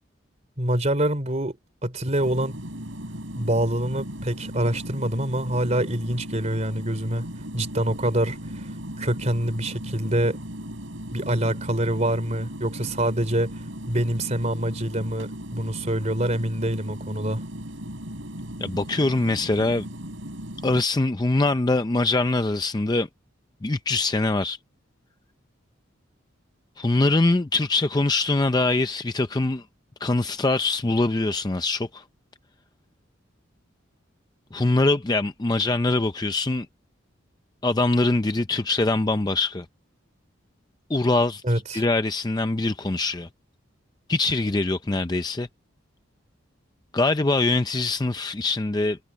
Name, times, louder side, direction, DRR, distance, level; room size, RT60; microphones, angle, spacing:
voice 1, 0.6-1.6 1.8-2.6 3.4-7.3 7.5-8.4 9.0-10.4 11.1-13.5 13.9-17.4 41.4-41.8, right 1 dB, 35° right, 3.7 m, -25 dB
sound 1, 2.2-20.8, equal, 70° right, 6.3 m, -36 dB
voice 2, 18.6-19.9 20.6-23.1 23.6-24.6 26.8-29.6 30.0-32.0 34.5-36.7 37.6-39.7 40.9-41.4 41.7-43.3 44.1-45.5 46.9-49.0, left 2 dB, 20° left, 0.5 m, -23 dB
head